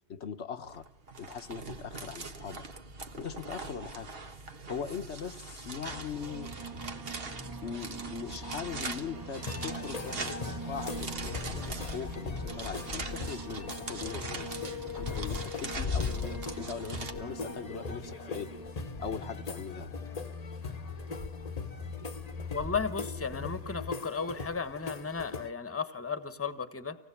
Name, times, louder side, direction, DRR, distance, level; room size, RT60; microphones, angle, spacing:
voice 1, 0.1-0.8 1.2-2.7 3.2-4.1 4.7-7.0 7.6-14.5 14.9-18.5 19.0-19.9, left 7 dB, 80° left, 8 dB, 1.4 m, -40 dB
sound 1, 0.6-17.1, right 3 dB, 60° right, 1.6 m, -42 dB
sound 2, 5.8-23.9, left 1 dB, 20° right, 1.3 m, -43 dB
sound 3, 9.3-25.5, left 4 dB, 40° left, 1.0 m, -39 dB
voice 2, 22.5-27.0, left 5 dB, 15° left, 12 dB, 1.1 m, -34 dB
25.5 x 18.0 x 8.5 m, 0.82 s
omnidirectional pair, 1.1 m